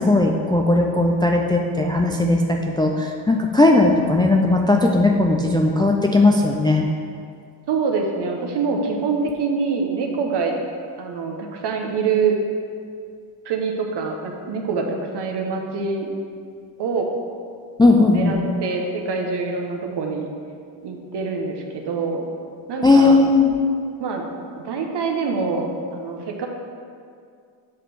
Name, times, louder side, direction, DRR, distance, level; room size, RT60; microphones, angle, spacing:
voice 1, 0.0-6.9 17.8-18.3 22.8-23.5, left 2 dB, 10° left, 1 dB, 0.3 m, -17 dB
voice 2, 7.7-10.5 11.0-12.3 13.4-16.1 16.8-17.1 17.8-20.3 20.8-22.2 22.7-23.2 24.0-24.2 24.6-26.5, right 5 dB, 60° right, 2 dB, 1.1 m, -25 dB
7.6 x 3.3 x 6.0 m, 2.3 s
cardioid pair, 90°, 47 cm